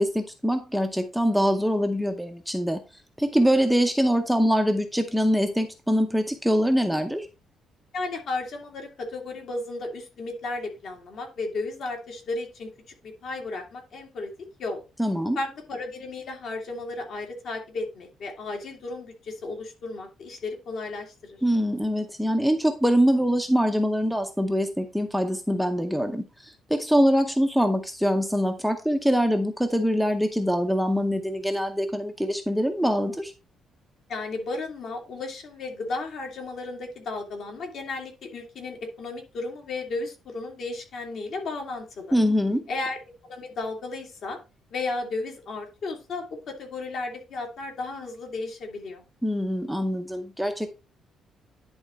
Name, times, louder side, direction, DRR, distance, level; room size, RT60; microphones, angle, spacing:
voice 1, 0.0-2.8 3.2-7.3 15.0-15.4 21.4-33.3 42.1-42.6 49.2-50.7, equal, ahead, 5 dB, 0.7 m, -24 dB
voice 2, 7.9-12.7 13.0-14.3 14.6-14.8 15.3-21.4 34.1-42.2 42.7-43.0 43.2-44.4 44.7-49.0, left 3 dB, 55° left, 2 dB, 2.4 m, -34 dB
10.5 x 3.7 x 4.3 m, 0.29 s
cardioid pair, 155°, 0 cm